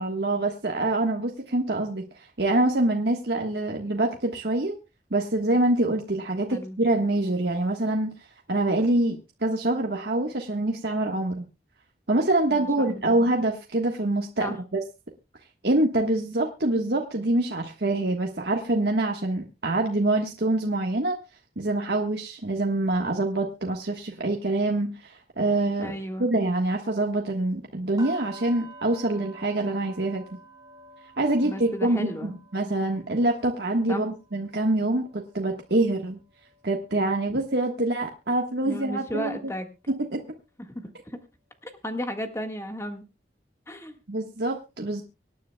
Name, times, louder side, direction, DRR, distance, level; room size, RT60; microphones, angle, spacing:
voice 1, 0.0-4.7 5.1-8.1 8.5-11.4 12.1-14.8 15.6-21.2 21.6-25.9 26.2-30.2 31.2-36.2 36.6-39.5 39.9-40.2 44.1-45.0, right 2 dB, 65° right, 1 dB, 1.4 m, -25 dB
voice 2, 12.5-13.2 14.4-14.6 25.8-26.3 31.4-32.4 33.9-34.0 38.6-39.7 40.7-41.2 41.6-43.0 43.7-43.9, equal, 15° left, 6 dB, 1.6 m, -34 dB
sound 1, 28.0-37.9 38.2-38.5 39.0-39.1, right 2 dB, 20° right, 4.1 m, -50 dB
25.0 x 9.7 x 2.3 m, 0.27 s
head